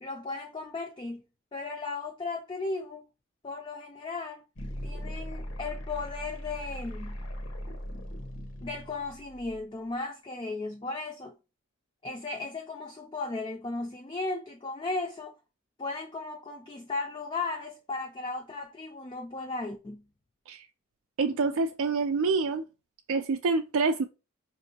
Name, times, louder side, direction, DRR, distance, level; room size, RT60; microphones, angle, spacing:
voice 1, 0.0-1.2 1.5-3.0 3.4-4.4 4.8-7.2 8.6-11.3 12.0-15.3 15.8-20.1, left 3 dB, 25° left, 0.3 m, -36 dB
sound 1, 4.6-9.6, equal, 80° left, 0.9 m, -39 dB
voice 2, 21.2-22.6 23.1-24.1, right 4 dB, 85° right, 0.4 m, -26 dB
5.1 x 2.6 x 2.8 m
head